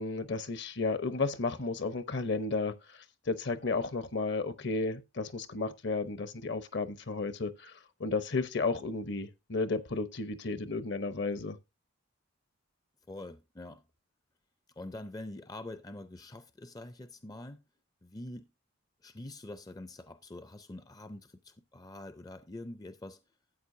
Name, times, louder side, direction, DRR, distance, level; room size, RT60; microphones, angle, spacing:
voice 1, 0.0-11.6, left 3 dB, 55° left, 0.9 m, -33 dB
voice 2, 13.1-13.8 14.8-17.6 18.0-18.5 19.0-23.2, left 1 dB, 20° left, 0.4 m, -45 dB
13.0 x 8.4 x 2.7 m
head